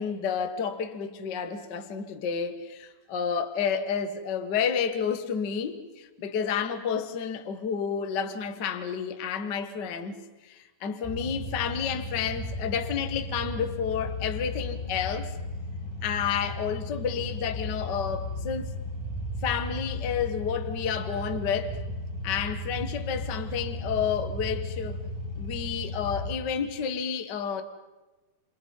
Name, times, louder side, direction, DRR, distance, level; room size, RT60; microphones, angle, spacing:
voice 1, 0.0-15.3 16.0-18.7 19.4-21.8 22.2-25.0 25.4-27.6, left 7 dB, 70° left, 1.0 m, -30 dB
sound 1, 11.0-26.3, left 1 dB, 10° left, 1.9 m, -35 dB
28.5 x 28.5 x 5.5 m
omnidirectional pair, 4.5 m